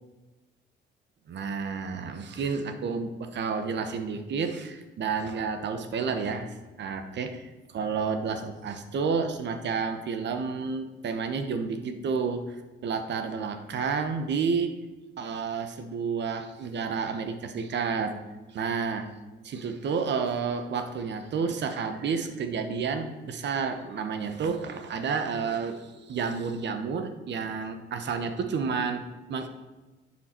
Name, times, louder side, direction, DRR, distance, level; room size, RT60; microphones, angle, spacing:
voice 1, 1.3-12.6 12.8-14.8 15.2-18.2 18.5-19.1 19.4-29.5, right 5 dB, 60° right, 8 dB, 1.1 m, -30 dB
11.0 x 7.5 x 4.5 m, 1.2 s
cardioid pair, 90°, 20 cm